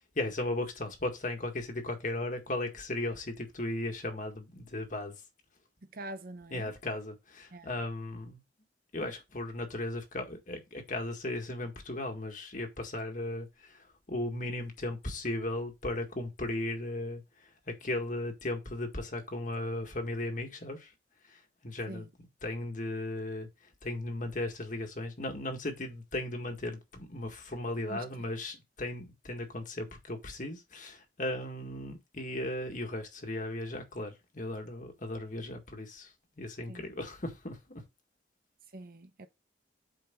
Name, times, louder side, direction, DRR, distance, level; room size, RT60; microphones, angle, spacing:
voice 1, 0.2-5.1 6.5-8.4 8.9-20.9 21.2-22.1 22.4-23.5 23.8-37.8, left 1 dB, 45° left, 1.8 m, -36 dB
voice 2, 5.9-6.7 7.5-7.7 21.9-22.1 27.9-28.1 36.7-36.9 38.7-39.3, right 1 dB, 55° right, 0.8 m, -44 dB
8.3 x 4.7 x 3.8 m
head